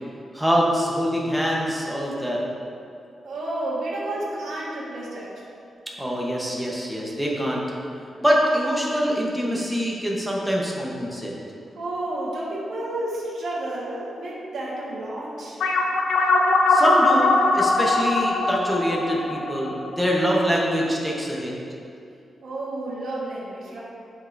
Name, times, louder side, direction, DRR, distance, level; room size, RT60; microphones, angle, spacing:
voice 1, 0.3-2.4 6.0-7.6 8.2-11.3 16.7-21.5, equal, ahead, -4 dB, 1.0 m, -24 dB
voice 2, 3.2-5.4 11.8-15.6 22.4-23.8, right 1 dB, 75° right, -7 dB, 1.4 m, -31 dB
sound 1, 15.6-20.4, left 2 dB, 85° left, 0.6 m, -21 dB
9.3 x 5.3 x 2.7 m, 2.5 s
wide cardioid pair, 145°, 0 cm